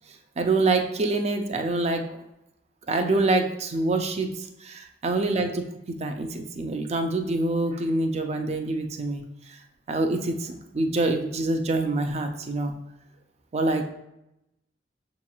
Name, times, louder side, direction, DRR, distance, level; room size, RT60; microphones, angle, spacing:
voice 1, 0.4-2.2 2.9-4.3 4.6-9.2 9.9-12.7 13.5-13.8, right 2 dB, 35° right, 5 dB, 0.4 m, -26 dB
6.2 x 2.9 x 2.3 m, 0.87 s
head